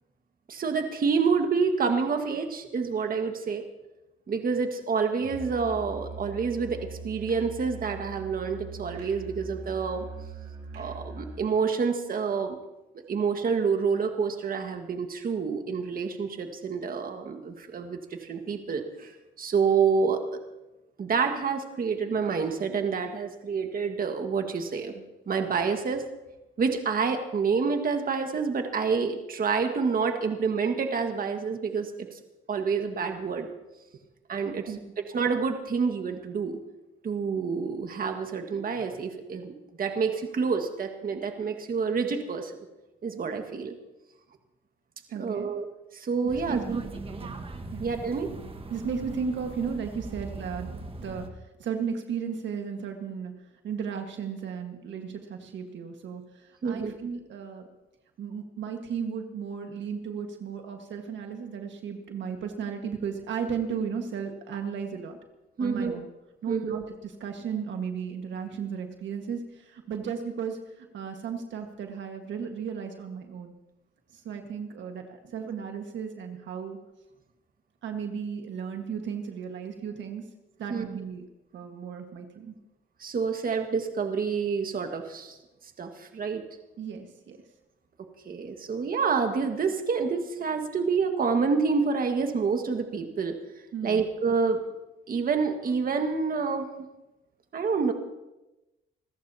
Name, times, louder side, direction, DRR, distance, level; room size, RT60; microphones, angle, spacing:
voice 1, 0.5-3.6 4.3-10.1 10.7-12.6 13.1-19.1 19.4-20.2 21.0-24.9 25.3-26.0 26.6-32.1 32.5-33.5 34.3-34.7 35.1-36.6 37.0-42.5 43.0-43.8 45.2-45.7 45.9-46.8 47.8-48.3 56.6-56.9 65.6-66.0 66.5-66.8 80.7-80.9 83.0-85.4 85.8-86.4 88.3-93.4 93.8-94.6 95.1-96.7 97.5-97.9, right 5 dB, 45° right, 5 dB, 1.7 m, -28 dB
Musical instrument, 5.2-11.5, right 4 dB, 85° right, 6.5 m, -41 dB
voice 2, 45.1-45.5 46.2-46.6 47.1-47.4 47.7-47.8 48.7-50.7 51.0-57.7 58.2-65.2 65.6-66.1 66.4-73.5 74.1-76.8 77.8-80.2 80.6-81.3 81.5-82.5 86.8-87.4 93.7-94.0, right 6 dB, 70° right, 4 dB, 1.6 m, -35 dB
sound 1, 46.3-51.3, right 3 dB, 30° right, 1.6 m, -40 dB
27.5 x 14.5 x 2.9 m, 1.0 s
cardioid pair, 90°, 20 cm